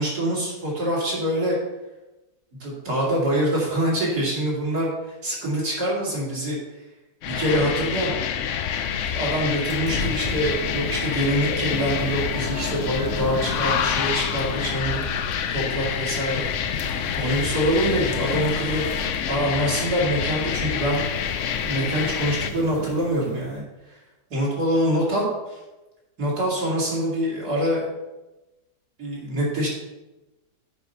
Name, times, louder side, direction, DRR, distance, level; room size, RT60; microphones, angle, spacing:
voice 1, 0.0-1.6 2.6-4.9 5.2-6.6 7.2-8.1 9.1-15.1 15.5-18.9 19.3-21.1 21.6-24.0 24.3-25.6 26.2-27.8 29.0-29.7, right 1 dB, 60° right, -5 dB, 3.1 m, -25 dB
sound 1, 7.2-22.5, left 8 dB, 70° left, 0.7 m, -27 dB
sound 2, 9.7-23.6, left 3 dB, 45° left, 1.5 m, -35 dB
7.9 x 5.1 x 5.8 m, 1.1 s
omnidirectional pair, 1.9 m